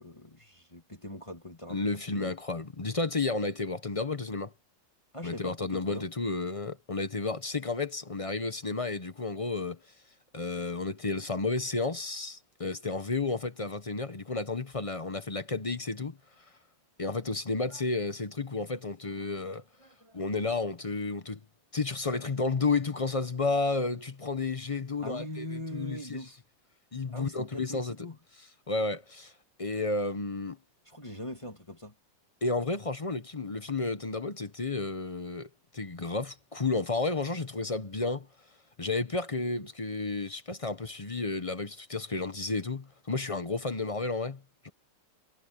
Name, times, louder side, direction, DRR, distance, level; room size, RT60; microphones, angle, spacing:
voice 1, 0.0-2.4 5.1-6.1 17.7-17.8 19.2-20.3 25.0-26.4 27.1-28.2 30.9-31.9, left 1 dB, 15° left, 2.2 m, -42 dB
voice 2, 1.7-4.5 5.2-9.8 10.3-16.2 17.0-19.6 20.1-21.4 21.7-26.2 26.9-28.0 28.7-29.3 29.6-30.6 32.4-35.5 35.7-38.3 38.8-44.7, left 3 dB, 30° left, 0.6 m, -32 dB
omnidirectional pair, 2.0 m